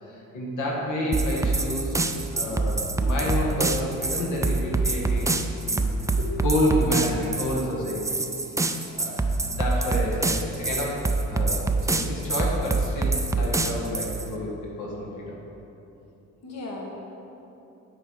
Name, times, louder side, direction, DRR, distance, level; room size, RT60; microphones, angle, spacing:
voice 1, 0.0-5.8 6.4-8.2 8.9-14.5 14.8-15.3, left 1 dB, 80° left, -3 dB, 1.8 m, -29 dB
sound 1, 1.1-14.3, right 3 dB, 10° right, 0.3 m, -25 dB
voice 2, 2.3-3.3 3.8-4.2 6.0-6.3 16.4-17.0, left 2 dB, 60° left, -2 dB, 1.4 m, -39 dB
9.9 x 4.4 x 4.8 m, 3.0 s
cardioid pair, 90°, 30 cm